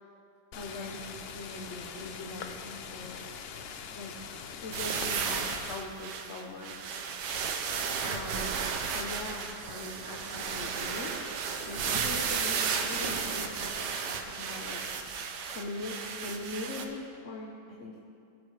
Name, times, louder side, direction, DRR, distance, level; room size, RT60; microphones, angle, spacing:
sound 1, 0.5-5.7, left 6 dB, 80° left, 0.5 m, -43 dB
voice 1, 0.5-3.2 4.0-7.0 8.0-11.2 11.7-14.8 15.5-18.0, left 2 dB, 50° left, -1 dB, 1.1 m, -41 dB
sound 2, 4.7-16.9, right 6 dB, 80° right, 1.4 m, -33 dB
19.0 x 7.5 x 3.2 m, 2.4 s
omnidirectional pair, 1.8 m